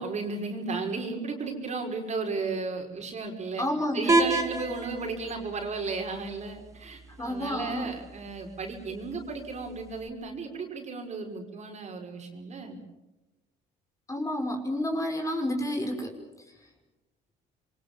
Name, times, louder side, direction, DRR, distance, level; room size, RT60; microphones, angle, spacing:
voice 1, 0.0-3.6 3.9-12.8, right 4 dB, 40° right, 3 dB, 5.9 m, -34 dB
voice 2, 3.6-4.3 7.2-8.0 14.1-16.2, left 1 dB, 20° left, 3 dB, 5.6 m, -30 dB
sound 1, 4.1-10.1, right 2 dB, 20° right, 2.8 m, -32 dB
27.5 x 23.5 x 7.4 m, 1.0 s
cardioid pair, 110°, 17 cm